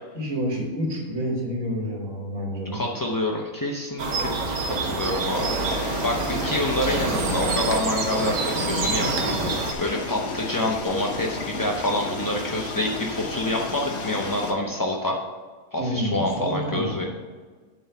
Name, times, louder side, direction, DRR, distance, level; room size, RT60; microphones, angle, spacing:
voice 1, 0.1-2.8 6.4-6.5 15.8-17.0, equal, 65° right, -2 dB, 2.1 m, -28 dB
voice 2, 2.7-4.3 4.6-15.2 15.7-17.0, left 1 dB, 30° left, -1 dB, 0.3 m, -27 dB
sound 1, 4.0-9.7, right 3 dB, 90° right, 1.5 m, -27 dB
sound 2, 5.3-14.5, left 4 dB, 50° left, 1.1 m, -33 dB
9.1 x 3.9 x 6.8 m, 1.4 s
omnidirectional pair, 1.5 m